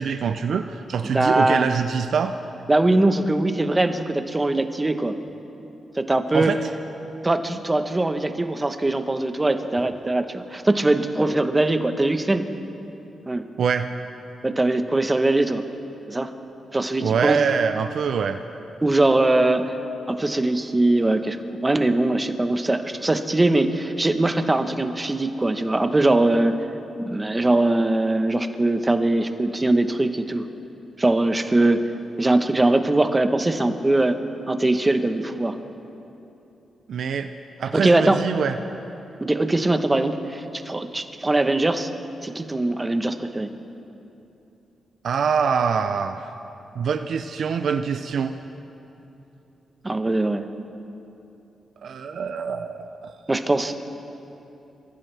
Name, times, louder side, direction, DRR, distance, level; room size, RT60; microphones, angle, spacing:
voice 1, 0.0-2.3 6.3-6.6 13.6-13.9 17.0-18.4 36.9-37.3 37.6-38.5 45.0-46.2 46.8-48.3 51.8-53.1, right 6 dB, 70° right, 7 dB, 0.6 m, -24 dB
voice 2, 1.0-1.7 2.7-5.1 6.0-6.5 7.2-12.5 13.3-13.4 14.4-15.6 16.1-16.3 16.7-17.4 18.8-19.7 20.1-21.4 21.6-26.6 27.0-30.5 31.0-31.8 32.2-34.2 34.5-35.6 37.7-38.2 39.2-41.9 42.2-43.5 49.8-50.5 53.3-53.8, right 2 dB, 20° right, 7 dB, 1.1 m, -21 dB
28.0 x 15.0 x 3.4 m, 2.9 s
cardioid pair, 85°, 0 cm